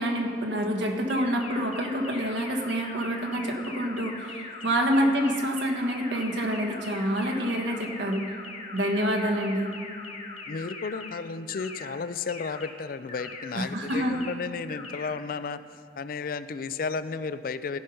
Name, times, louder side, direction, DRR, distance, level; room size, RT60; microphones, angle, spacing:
voice 1, 0.0-8.3 8.7-9.7 13.5-14.2, equal, 85° right, 2 dB, 1.4 m, -27 dB
sound 1, 1.1-11.1 11.5-11.9 12.3-12.7 13.1-13.5 13.9-14.3 14.7-15.1, left 4 dB, 35° left, 1.0 m, -41 dB
voice 2, 10.5-15.6 16.0-17.8, left 5 dB, 50° left, 13 dB, 0.4 m, -33 dB
15.5 x 5.7 x 5.4 m, 2.4 s
head